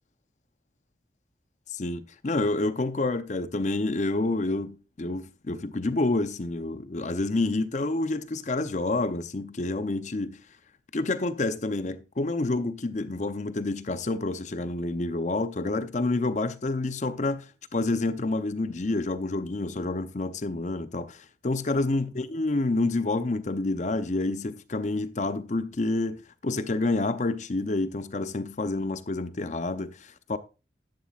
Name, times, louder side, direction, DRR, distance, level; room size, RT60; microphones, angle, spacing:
voice 1, 1.7-10.4 10.9-30.4, left 2 dB, 45° left, 0.6 m, -28 dB
11.5 x 10.5 x 2.4 m
head